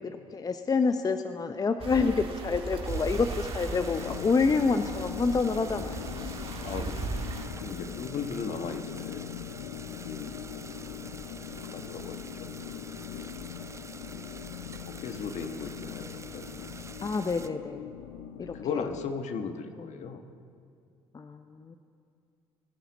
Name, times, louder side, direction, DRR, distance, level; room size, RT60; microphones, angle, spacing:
voice 1, 0.1-6.4 17.0-17.9 18.4-18.9 19.8-19.9 21.1-21.8, left 4 dB, 30° left, 8 dB, 0.7 m, -28 dB
sound 1, 1.8-7.5, right 4 dB, 45° right, 2.0 m, -37 dB
sound 2, 2.9-17.5, right 4 dB, 20° right, 0.7 m, -46 dB
sound 3, 3.7-19.1, left 11 dB, 85° left, 0.5 m, -41 dB
voice 2, 6.6-9.3 10.0-11.0 11.6-13.3 14.1-14.4 14.8-16.7 18.3-20.2, left 5 dB, 60° left, 7 dB, 1.3 m, -38 dB
22.5 x 10.0 x 4.1 m, 2.3 s
hypercardioid pair, 60°, 14 cm